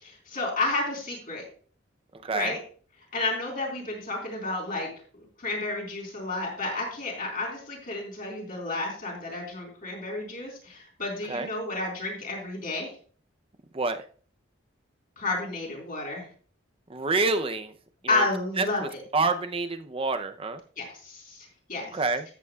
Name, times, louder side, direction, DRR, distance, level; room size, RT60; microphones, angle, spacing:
voice 1, 0.0-1.4 2.3-2.6 3.1-4.9 5.2-12.9 15.2-16.3 18.1-18.8 20.8-22.0, left 2 dB, 45° left, -1 dB, 4.2 m, -31 dB
voice 2, 2.2-2.5 11.3-11.5 13.7-14.0 16.9-17.7 18.1-18.3 18.6-20.6 21.9-22.2, right 3 dB, 30° right, 9 dB, 0.6 m, -27 dB
13.5 x 8.2 x 2.3 m, 0.43 s
head